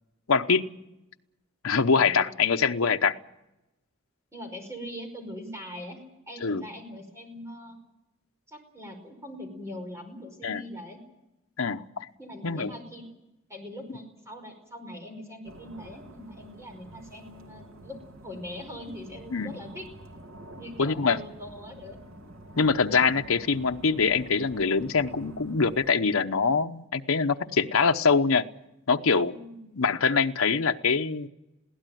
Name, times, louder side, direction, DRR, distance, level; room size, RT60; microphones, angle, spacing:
voice 1, 0.3-0.6 1.6-3.1 6.4-6.6 10.4-10.6 11.6-12.1 12.4-12.7 19.3-19.5 20.8-21.2 22.6-28.4 28.9-29.3 29.8-31.3, left 5 dB, 85° left, 7 dB, 0.9 m, -24 dB
voice 2, 1.9-2.3 4.3-6.0 6.3-7.8 8.5-11.0 12.2-13.1 13.5-18.0 18.2-19.9 20.6-22.0 29.3-29.8, left 1 dB, 15° right, 4 dB, 5.2 m, -42 dB
sound 1, 15.4-25.9, right 1 dB, 75° right, 2.7 m, -47 dB
21.5 x 16.5 x 9.2 m, 0.92 s
head